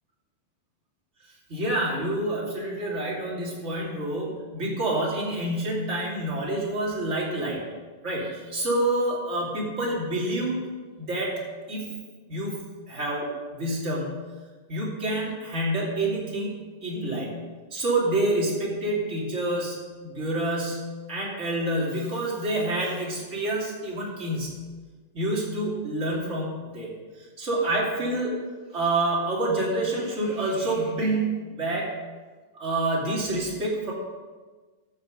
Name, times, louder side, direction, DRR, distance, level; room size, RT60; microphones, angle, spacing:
voice 1, 1.5-7.6 8.0-10.6 11.0-11.9 12.3-14.3 14.7-16.5 16.8-17.4 17.7-24.6 25.1-26.9 27.2-28.3 28.7-31.9 32.6-33.9, right 1 dB, 20° right, -4 dB, 2.4 m, -28 dB
13.5 x 7.9 x 5.2 m, 1.4 s
omnidirectional pair, 4.3 m